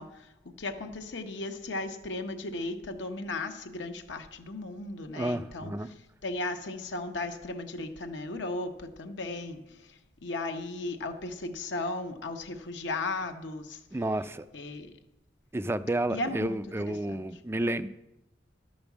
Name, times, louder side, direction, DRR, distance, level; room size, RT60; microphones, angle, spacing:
voice 1, 0.0-5.9 6.2-13.8 14.5-14.9 16.1-16.6 16.9-17.2, left 2 dB, 75° left, 1.0 m, -36 dB
voice 2, 5.1-5.9 13.9-14.5 15.5-17.9, right 1 dB, 15° right, 0.3 m, -31 dB
11.5 x 5.3 x 7.2 m
head